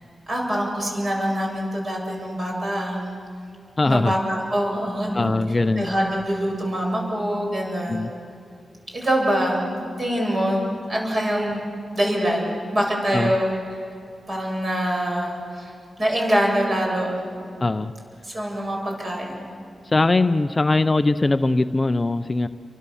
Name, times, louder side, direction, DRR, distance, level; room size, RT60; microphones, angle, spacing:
voice 1, 0.3-3.1 3.9-5.2 5.8-8.1 8.9-11.6 11.9-13.5 14.3-15.7 16.0-17.2 18.2-19.4, equal, 35° right, -1 dB, 7.8 m, -24 dB
voice 2, 3.8-4.1 5.1-5.9 7.9-8.1 13.1-13.3 17.6-17.9 19.8-22.5, left 2 dB, 25° left, 10 dB, 0.5 m, -21 dB
30.0 x 24.0 x 7.1 m, 2.4 s
wide cardioid pair, 110°, 0 cm